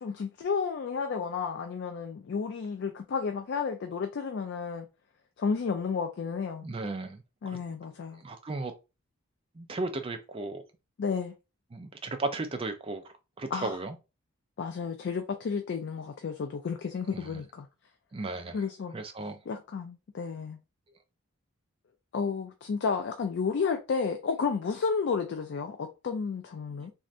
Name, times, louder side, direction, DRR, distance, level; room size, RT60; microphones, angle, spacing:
voice 1, 0.0-4.9 5.4-6.6 7.4-8.2 11.0-11.3 13.5-13.8 14.6-17.7 18.5-18.9 19.5-20.6 22.1-26.9, left 5 dB, 50° left, 0.3 m, -32 dB
voice 2, 6.6-7.6 8.1-8.7 9.5-10.6 11.7-13.9 17.1-17.4 18.1-18.6 18.9-19.4, right 2 dB, 25° right, 0.4 m, -35 dB
3.2 x 2.7 x 2.4 m
head